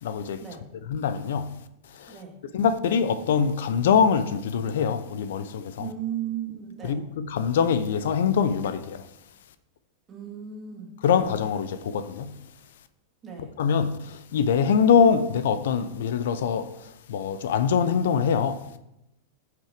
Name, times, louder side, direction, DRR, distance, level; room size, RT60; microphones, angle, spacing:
voice 1, 0.0-0.4 0.9-1.6 1.9-2.1 2.5-5.9 6.8-9.1 11.0-12.4 13.4-18.8, left 7 dB, 75° left, 0.7 m, -24 dB
voice 2, 5.8-7.0 10.1-10.9 13.2-13.5, right 9 dB, 25° right, 2.2 m, -35 dB
9.1 x 6.0 x 5.0 m
hypercardioid pair, 130°, 0 cm